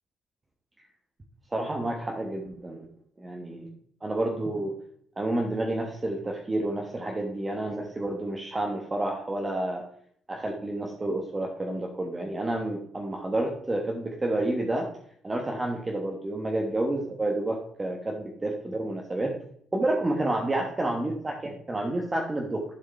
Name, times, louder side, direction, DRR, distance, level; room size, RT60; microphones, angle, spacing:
voice 1, 1.5-2.8 3.2-3.7 4.0-4.7 5.2-9.8 10.3-14.9 15.2-19.3 19.7-22.6, right 1 dB, 25° right, 1 dB, 1.2 m, -29 dB
11.0 x 4.8 x 4.2 m, 0.65 s
cardioid pair, 90°, 0 cm